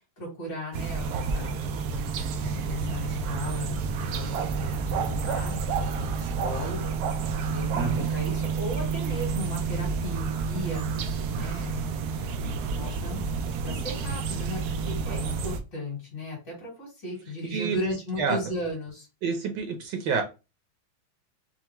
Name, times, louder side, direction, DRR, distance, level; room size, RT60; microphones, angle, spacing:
voice 1, 0.2-1.5 2.4-3.8 4.1-6.9 7.5-10.9 11.3-11.8 12.1-13.2 13.6-19.1, left 1 dB, 65° left, -3 dB, 3.2 m, -36 dB
sound 1, 0.7-15.6, right 5 dB, 85° right, 0.8 m, -29 dB
voice 2, 7.7-8.1 17.5-17.8 18.2-18.4 19.2-20.2, right 5 dB, 65° right, 4 dB, 1.3 m, -28 dB
5.7 x 2.1 x 3.0 m, 0.29 s
omnidirectional pair, 2.2 m